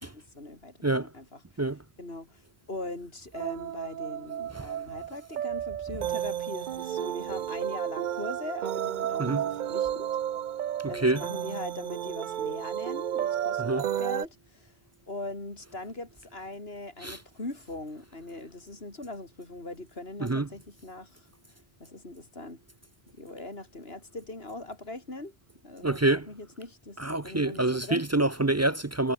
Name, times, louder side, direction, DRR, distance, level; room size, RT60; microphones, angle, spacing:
voice 1, 0.0-1.6 2.0-10.1 10.9-14.8 15.1-22.6 23.1-25.4 25.6-26.0 26.3-28.0, left 2 dB, 75° left, 4.7 m, -41 dB
sound 1, 3.3-14.3, right 10 dB, 55° right, 0.6 m, -32 dB
voice 2, 10.8-11.2 13.6-13.9 17.0-17.2 20.2-20.5 25.8-26.3 27.0-29.1, right 2 dB, 25° right, 0.3 m, -26 dB
omnidirectional pair, 1.0 m